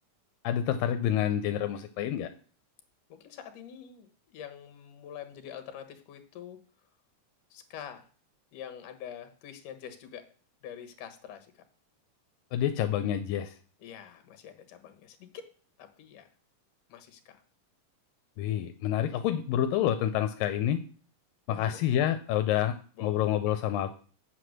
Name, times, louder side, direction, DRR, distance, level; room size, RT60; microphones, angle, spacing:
voice 1, 0.4-2.3 12.5-13.5 18.4-20.8 21.5-24.0, left 11 dB, 85° left, 8 dB, 2.4 m, -28 dB
voice 2, 3.1-6.6 7.5-8.1 8.5-10.3 10.6-11.6 13.8-15.5 15.8-16.3 16.9-17.4 19.2-19.3 21.5-21.8 23.0-23.2, left 9 dB, 70° left, 9 dB, 2.8 m, -45 dB
8.1 x 7.9 x 6.5 m, 0.41 s
omnidirectional pair, 3.9 m